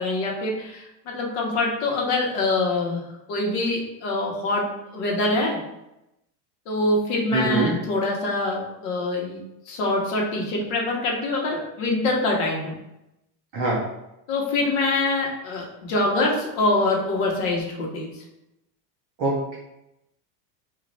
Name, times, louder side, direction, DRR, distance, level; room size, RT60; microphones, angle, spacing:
voice 1, 0.0-3.0 3.3-5.6 6.7-9.4 9.7-12.8 14.3-18.2, left 2 dB, 55° left, -1 dB, 1.0 m, -24 dB
voice 2, 7.3-7.7 13.5-13.8 19.2-19.6, right 2 dB, 30° right, -4 dB, 0.4 m, -23 dB
3.1 x 2.5 x 4.0 m, 0.88 s
cardioid pair, 175°, 46 cm